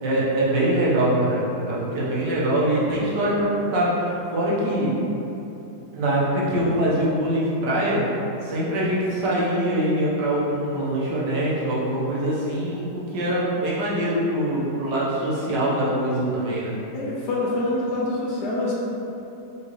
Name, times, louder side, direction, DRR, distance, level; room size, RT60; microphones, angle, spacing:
voice 1, 0.0-4.9 5.9-8.0 8.4-16.7, right 1 dB, 90° right, -7 dB, 1.6 m, -23 dB
voice 2, 16.9-18.7, left 2 dB, 75° left, -5 dB, 1.4 m, -25 dB
4.4 x 3.7 x 3.0 m, 2.9 s
omnidirectional pair, 1.8 m